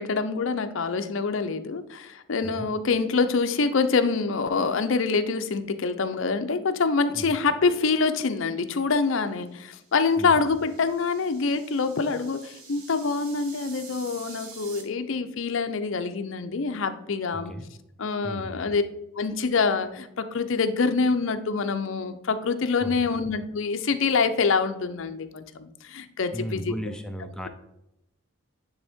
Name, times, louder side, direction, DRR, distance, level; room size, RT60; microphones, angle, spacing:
voice 1, 0.0-17.5 18.0-18.8 19.2-26.7, left 4 dB, 60° left, 9 dB, 0.5 m, -25 dB
sound 1, 9.7-14.8, right 4 dB, 80° right, 1.2 m, -47 dB
voice 2, 17.3-17.7 18.2-18.7 22.8-23.2 26.3-27.5, equal, 5° left, 5 dB, 0.5 m, -36 dB
9.9 x 3.4 x 3.5 m, 0.85 s
head